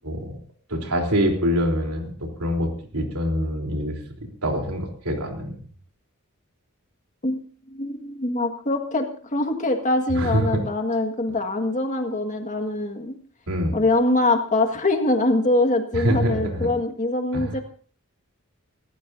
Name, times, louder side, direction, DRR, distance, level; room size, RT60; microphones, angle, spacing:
voice 1, 0.0-0.4 0.7-5.6 10.1-10.6 13.5-13.8 15.9-16.7 17.3-17.6, equal, 80° right, 2 dB, 3.6 m, -25 dB
voice 2, 7.7-13.1 13.7-17.6, left 2 dB, 35° left, 5 dB, 1.8 m, -23 dB
25.5 x 14.5 x 2.7 m, 0.44 s
head